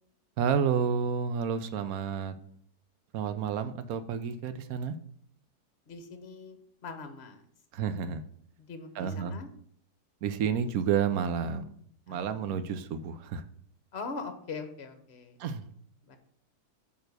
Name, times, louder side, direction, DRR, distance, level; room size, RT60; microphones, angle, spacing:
voice 1, 0.4-2.3 3.1-5.0 7.7-8.2 9.0-9.4 10.2-11.8 12.1-13.4 15.4-15.6, right 7 dB, 70° right, 11 dB, 1.1 m, -30 dB
voice 2, 5.9-6.6 6.8-7.4 8.6-9.5 12.1-12.4 13.9-15.4 16.0-16.2, left 4 dB, 45° left, 8 dB, 1.2 m, -41 dB
8.9 x 3.5 x 6.6 m, 0.64 s
omnidirectional pair, 1.7 m